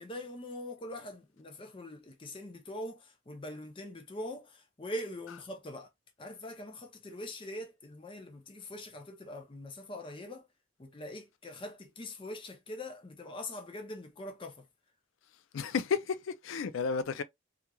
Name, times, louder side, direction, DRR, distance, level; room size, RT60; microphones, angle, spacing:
voice 1, 0.0-5.9 6.2-10.5 10.8-14.7, left 1 dB, 25° left, 0.5 m, -43 dB
voice 2, 15.5-17.2, left 5 dB, 80° left, 0.4 m, -32 dB
2.9 x 2.4 x 2.2 m
head